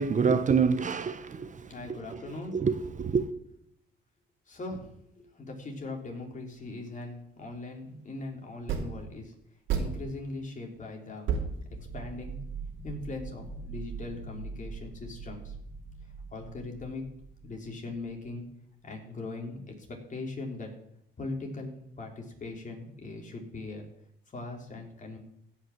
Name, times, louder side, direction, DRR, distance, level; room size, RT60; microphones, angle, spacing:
voice 1, 0.0-3.3, right 5 dB, 40° right, 1.0 m, -28 dB
voice 2, 1.7-2.6 4.5-4.9 5.2-9.3 9.8-11.3 11.9-12.4 12.8-15.5 16.3-17.0 17.4-18.4 18.8-20.7 21.2-23.8 24.3-25.2, left 2 dB, 40° left, 3.6 m, -40 dB
sound 1, 6.5-6.6 8.7-9.1 9.7-10.3 10.8-10.9 11.3-12.5, right 6 dB, 85° right, 2.7 m, -31 dB
sound 2, 11.5-18.2, right 4 dB, 20° right, 2.3 m, -43 dB
16.0 x 5.9 x 7.4 m
cardioid pair, 90°, 20 cm